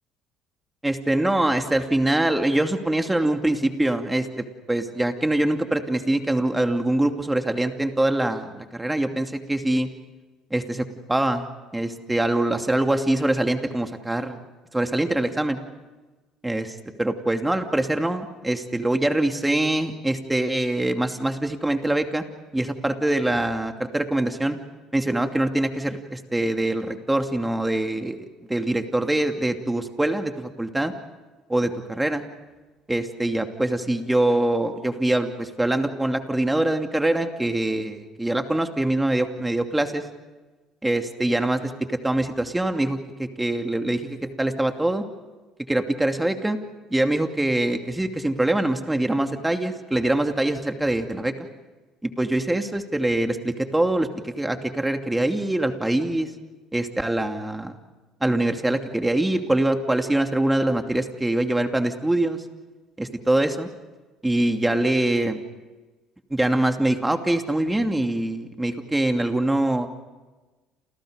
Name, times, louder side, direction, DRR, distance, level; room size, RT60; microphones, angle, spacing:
voice 1, 0.8-9.9 10.5-11.4 11.7-14.4 14.7-15.6 16.4-22.2 22.5-24.6 24.9-30.9 31.5-32.2 32.9-40.0 40.8-45.0 45.7-46.6 46.9-51.3 52.0-56.3 56.7-57.7 58.2-62.4 63.0-63.7 64.2-65.4 66.3-69.9, right 1 dB, 10° right, 5 dB, 2.6 m, -24 dB
29.5 x 28.5 x 5.2 m, 1.2 s
cardioid pair, 110°, 0 cm